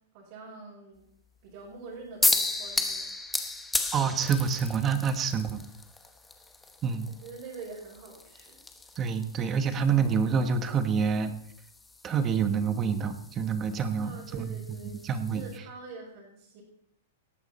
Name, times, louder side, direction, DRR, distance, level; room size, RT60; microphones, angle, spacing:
voice 1, 0.1-1.0 1.4-3.1 7.2-8.6 14.0-15.0 15.3-16.6, right 4 dB, 35° right, -5 dB, 5.1 m, -45 dB
sound 1, 2.2-15.6, left 3 dB, 5° left, 0.9 m, -35 dB
voice 2, 3.9-5.6 6.8-7.1 9.0-11.3 12.0-14.5 15.0-15.5, right 6 dB, 15° right, 9 dB, 1.1 m, -27 dB
18.5 x 14.0 x 4.2 m, 0.70 s
supercardioid pair, 180°, 0 cm